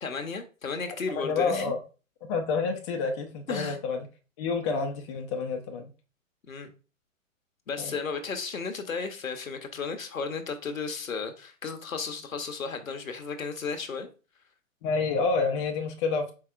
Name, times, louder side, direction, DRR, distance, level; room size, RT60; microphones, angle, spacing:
voice 1, 0.0-1.7 3.5-3.8 6.5-6.7 7.7-14.1, left 4 dB, 80° left, 0.9 m, -34 dB
voice 2, 1.2-1.8 2.2-4.1 4.4-5.9 7.8-8.0 14.8-16.3, left 4 dB, 25° left, 0.5 m, -28 dB
4.8 x 4.1 x 2.4 m
figure-of-eight pair, 120°, 40 cm